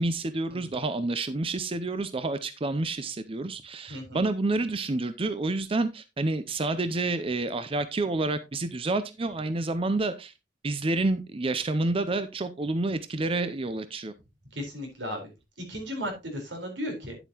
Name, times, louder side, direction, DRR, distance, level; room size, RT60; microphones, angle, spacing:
voice 1, 0.0-10.3 10.6-14.1, right 2 dB, 30° right, 0.5 m, -29 dB
voice 2, 3.9-4.2 14.5-15.3 15.6-17.2, equal, 85° right, 4.2 m, -35 dB
10.0 x 7.9 x 2.9 m
head